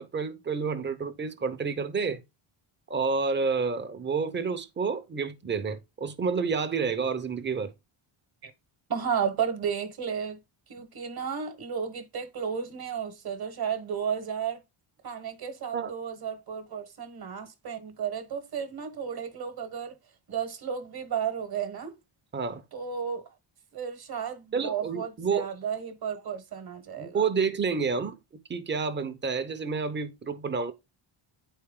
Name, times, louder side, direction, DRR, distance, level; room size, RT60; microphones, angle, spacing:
voice 1, 0.0-2.2 2.9-7.7 15.7-15.9 22.3-22.6 24.5-25.5 27.0-28.2 28.5-30.7, right 5 dB, 20° right, 0.7 m, -29 dB
voice 2, 8.9-10.4 10.7-14.6 15.0-20.0 20.3-22.0 22.7-23.2 23.7-27.2, right 7 dB, 45° right, 1.2 m, -33 dB
9.3 x 4.5 x 3.6 m
wide cardioid pair, 180°, 50 cm